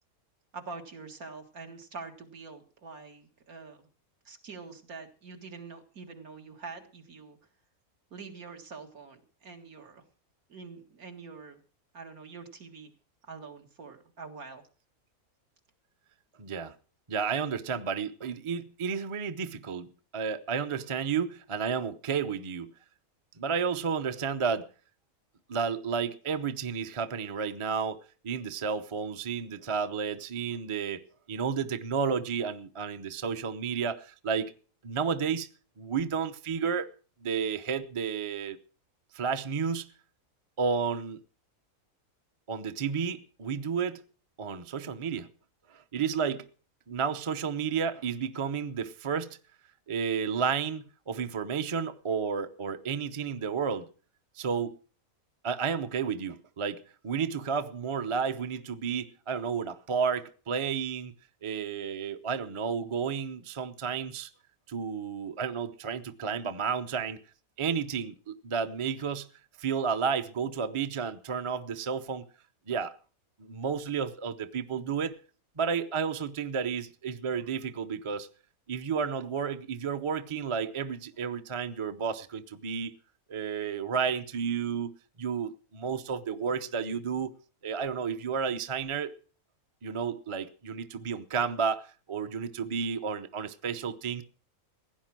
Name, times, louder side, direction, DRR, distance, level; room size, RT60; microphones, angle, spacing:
voice 1, 0.5-3.8 4.3-7.4 8.1-10.0 10.5-11.6 11.9-12.9 13.2-14.6, right 4 dB, 75° right, 2.3 m, -45 dB
voice 2, 16.4-16.7 17.1-19.9 20.1-22.7 23.4-24.7 25.5-31.0 31.3-34.5 34.8-35.5 35.8-36.9 37.2-38.6 39.1-39.9 40.6-41.2 42.5-44.0 44.4-45.3 45.7-46.4 46.9-49.4 49.9-53.9 54.4-54.8 55.4-61.1 61.4-64.3 64.7-67.2 67.6-69.3 69.6-72.2 72.7-73.0 73.4-75.1 75.6-78.3 78.7-82.9 83.3-84.9 85.2-87.3 87.6-89.1 89.8-94.2, right 6 dB, 30° right, 0.6 m, -31 dB
16.0 x 9.8 x 6.0 m
omnidirectional pair, 1.5 m